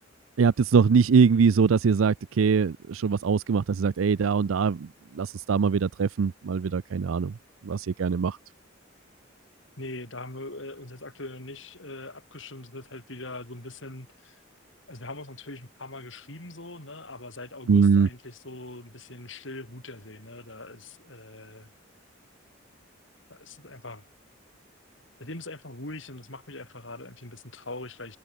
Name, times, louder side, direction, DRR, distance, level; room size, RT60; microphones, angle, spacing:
voice 1, 0.4-7.3 7.6-8.4 17.7-18.1, right 5 dB, 85° right, 0.5 m, -22 dB
voice 2, 9.8-14.4 14.9-21.7 23.3-24.0 25.2-28.2, left 2 dB, 70° left, 5.6 m, -41 dB
head